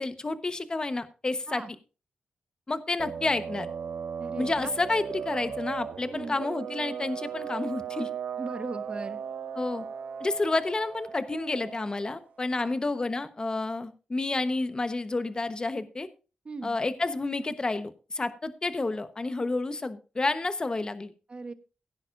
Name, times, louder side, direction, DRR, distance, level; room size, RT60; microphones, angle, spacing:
voice 1, 0.0-1.6 2.7-3.7 4.4-8.1 9.5-9.8 10.2-16.1 16.6-21.1, left 3 dB, 30° left, 12 dB, 1.0 m, -30 dB
sound 1, 3.0-12.2, right 7 dB, 75° right, 1.1 m, -37 dB
voice 2, 4.2-4.7 6.1-6.4 8.4-9.2 12.6-12.7 16.4-16.8 21.3-21.5, right 3 dB, 40° right, 11 dB, 1.1 m, -38 dB
17.0 x 9.8 x 2.5 m, 0.33 s
cardioid pair, 80°, 3 cm